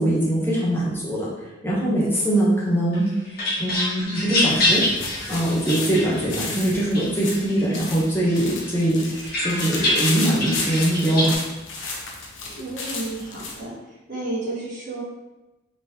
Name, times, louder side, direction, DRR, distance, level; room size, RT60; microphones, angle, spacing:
voice 1, 0.0-3.1 3.6-4.8 5.3-9.0 9.4-11.4, right 1 dB, 10° left, -7 dB, 0.9 m, -22 dB
sound 1, 2.9-6.5 6.9-7.8 8.3-11.4, left 1 dB, 50° left, 1.1 m, -26 dB
sound 2, 4.1-13.6, left 3 dB, 80° left, 0.6 m, -33 dB
voice 2, 5.8-6.3 12.5-15.0, right 2 dB, 45° right, -9 dB, 1.1 m, -32 dB
3.5 x 3.0 x 2.8 m, 1.0 s
head